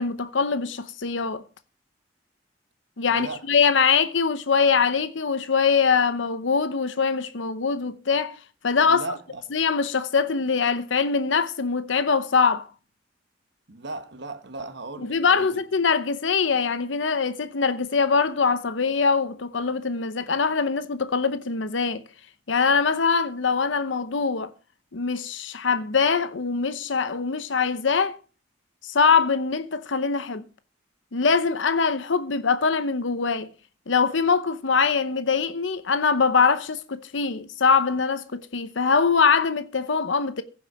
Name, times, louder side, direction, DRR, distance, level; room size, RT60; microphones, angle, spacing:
voice 1, 0.0-1.4 3.0-8.4 8.6-9.0 9.5-12.7 15.0-22.0 22.5-24.5 24.9-28.2 28.8-30.4 31.1-33.5 33.9-40.4, left 5 dB, 75° left, 0.8 m, -23 dB
voice 2, 3.1-3.5 8.9-9.5 13.7-15.6, right 3 dB, 65° right, 1.3 m, -37 dB
16.0 x 5.6 x 6.2 m
head